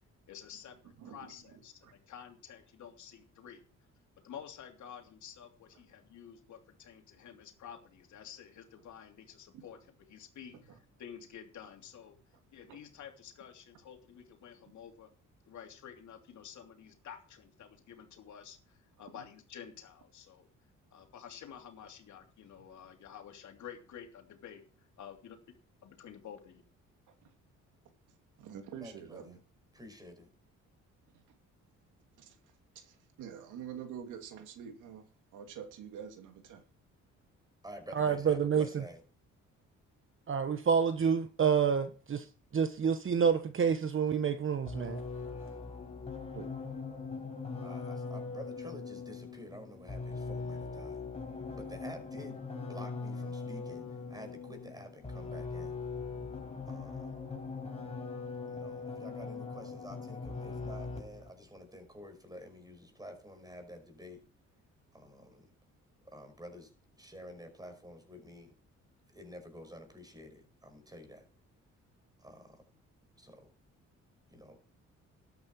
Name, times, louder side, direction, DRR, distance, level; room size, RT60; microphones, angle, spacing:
voice 1, 0.3-3.6 4.2-9.8 10.1-12.1 12.5-15.1 15.4-20.5 20.9-24.6 25.0-25.4 25.8-26.6, left 8 dB, 70° left, 2.9 m, -50 dB
voice 2, 1.0-1.9 9.5-9.6 10.7-10.8 12.7-12.8 19.1-19.2 28.4-29.4 32.2-32.4 32.7-35.0 35.3-36.6 46.3-46.5, right 8 dB, 90° right, 2.5 m, -46 dB
voice 3, 28.8-29.4 29.7-30.3 37.6-39.0 47.6-51.0 51.5-52.4 52.7-55.7 56.7-57.1 58.5-64.2 64.9-65.5 66.1-66.7 67.0-68.6 69.1-71.3 72.2-72.6 73.2-73.5 74.3-74.6, equal, 15° right, 5.5 m, -50 dB
voice 4, 37.9-38.8 40.3-42.3 42.5-45.0, right 6 dB, 45° right, 1.1 m, -28 dB
sound 1, 44.7-61.3, left 4 dB, 20° left, 4.9 m, -41 dB
13.0 x 9.7 x 4.6 m
cardioid pair, 90°, 30 cm